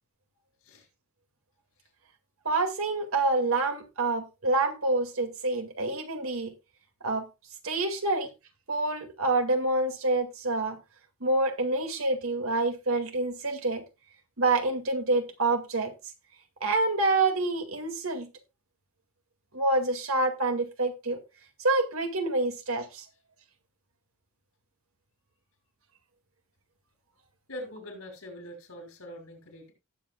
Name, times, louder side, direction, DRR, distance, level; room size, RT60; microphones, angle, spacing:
voice 1, 2.4-6.5 7.0-7.3 7.6-8.3 8.7-10.8 11.2-13.8 14.4-15.9 16.6-18.3 19.5-21.2 21.6-23.0, right 2 dB, 85° right, 2.2 m, -27 dB
voice 2, 27.5-29.7, left 1 dB, 85° left, 6.1 m, -43 dB
18.0 x 7.7 x 2.3 m
head